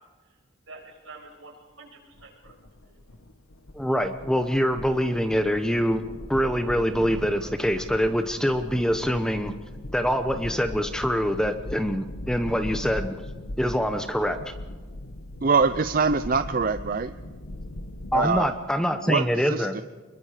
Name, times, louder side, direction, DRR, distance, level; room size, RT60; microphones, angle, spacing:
voice 1, 0.7-2.5 2.9-3.0, right 3 dB, 75° right, -1 dB, 7.1 m, -47 dB
sound 1, 2.2-18.5, left 1 dB, 85° left, 1.4 m, -39 dB
voice 2, 3.7-6.0 6.3-9.5 9.9-13.2 13.6-14.4 18.1-19.8, equal, 5° left, 8 dB, 0.9 m, -24 dB
voice 3, 15.4-17.1 18.1-18.5 18.9-19.8, right 5 dB, 40° right, 11 dB, 0.5 m, -24 dB
25.0 x 22.0 x 5.0 m, 1.4 s
head